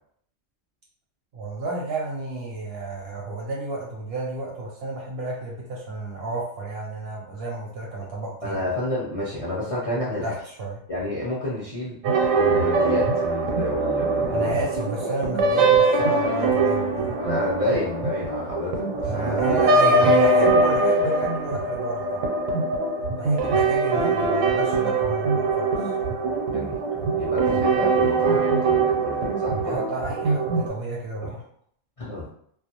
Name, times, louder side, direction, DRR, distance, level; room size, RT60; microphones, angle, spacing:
voice 1, 1.3-8.6 10.2-10.8 14.3-17.1 19.0-22.3 23.2-25.7 29.6-31.4, right 2 dB, 65° right, -2 dB, 0.7 m, -31 dB
voice 2, 8.4-10.3 10.9-12.0 12.3-14.5 17.2-19.6 20.0-20.1 20.4-20.6 23.4-23.5 26.2-26.8 27.1-29.8 31.2-31.3 32.0-32.2, left 1 dB, 45° left, -7 dB, 0.5 m, -29 dB
sound 1, 12.0-30.7, right 3 dB, 80° right, 1.0 m, -22 dB
2.3 x 2.2 x 2.8 m, 0.67 s
omnidirectional pair, 1.3 m